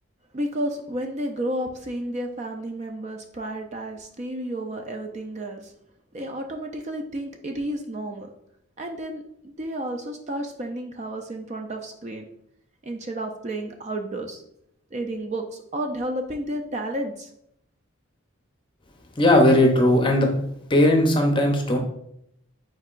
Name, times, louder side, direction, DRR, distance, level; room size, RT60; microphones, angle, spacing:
voice 1, 0.3-5.7 6.1-8.3 8.8-9.2 9.6-12.2 12.8-14.4 14.9-17.3, right 1 dB, 35° right, 4 dB, 0.4 m, -31 dB
voice 2, 19.2-20.3 20.7-21.8, left 1 dB, 25° left, 3 dB, 0.6 m, -18 dB
4.7 x 4.5 x 2.4 m, 0.73 s
head